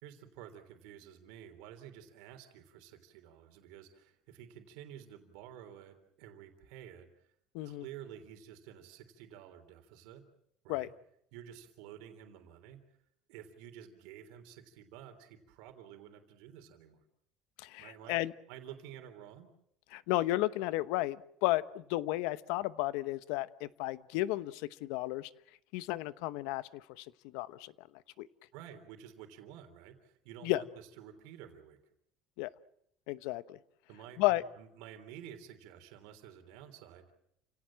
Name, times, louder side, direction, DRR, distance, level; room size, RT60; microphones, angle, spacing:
voice 1, 0.0-7.3 7.6-10.3 10.6-10.9 11.3-12.8 13.3-17.0 17.8-18.2 18.5-19.5 28.5-31.8 33.9-37.1, right 10 dB, 75° right, 6 dB, 3.5 m, -51 dB
voice 2, 17.6-18.3 19.9-25.3 25.7-27.1 27.3-27.9 28.2-28.3 30.4-30.6 32.4-32.5 33.1-33.6 34.2-34.4, left 17 dB, 75° left, 15 dB, 1.0 m, -33 dB
29.5 x 17.5 x 7.6 m, 0.75 s
cardioid pair, 170°, 0 cm